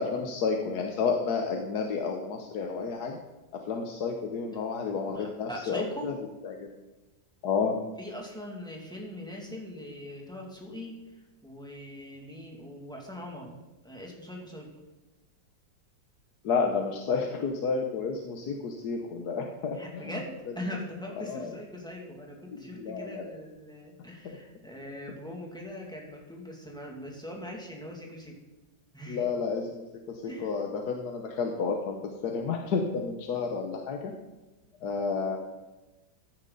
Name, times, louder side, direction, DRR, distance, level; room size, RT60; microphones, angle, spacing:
voice 1, 0.0-3.2 3.7-6.1 6.4-6.7 7.4-7.8 16.4-20.1 21.2-21.5 22.5-23.3 24.2-24.4 29.1-32.0 32.2-34.1 34.8-35.4, left 5 dB, 60° left, 3 dB, 1.4 m, -31 dB
voice 2, 5.1-6.1 8.0-13.6 13.8-14.7 19.7-28.4 28.9-29.3 30.3-30.5, left 1 dB, ahead, -1 dB, 2.3 m, -41 dB
15.0 x 9.9 x 4.0 m, 1.1 s
omnidirectional pair, 2.0 m